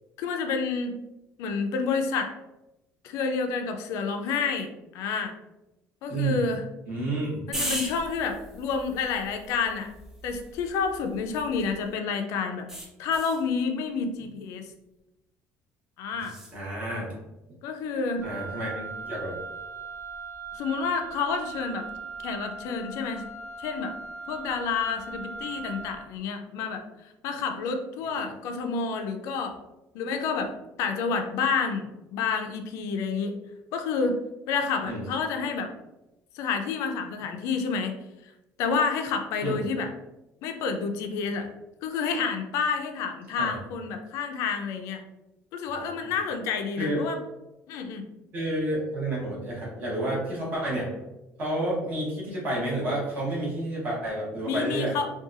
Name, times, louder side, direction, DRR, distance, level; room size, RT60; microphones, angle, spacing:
voice 1, 0.2-1.0 1.4-2.3 3.0-5.3 6.0-6.6 7.5-9.9 10.2-12.7 13.0-14.7 16.0-16.3 17.6-18.3 20.5-21.8 22.2-23.3 23.6-23.9 24.3-26.8 27.2-29.6 29.9-33.4 33.7-34.2 34.5-35.7 36.3-38.0 38.6-39.9 40.4-41.5 41.8-45.0 45.5-47.2 47.7-48.1 54.4-55.1, left 5 dB, 65° left, 5 dB, 0.4 m, -29 dB
voice 2, 6.1-6.4 6.9-7.4 16.5-17.2 18.2-19.4 34.8-35.0 39.4-39.6 43.4-43.5 45.8-45.9 46.8-47.0 48.3-50.9 51.4-55.0, right 1 dB, 30° right, -5 dB, 1.0 m, -30 dB
sound 1, 7.5-11.9 12.7-13.5 16.2-16.6, right 1 dB, 10° right, 0.4 m, -38 dB
Wind instrument woodwind instrument, 18.2-26.0, right 4 dB, 70° right, 1.4 m, -39 dB
2.7 x 2.2 x 2.5 m, 0.96 s
cardioid pair, 175°, 5 cm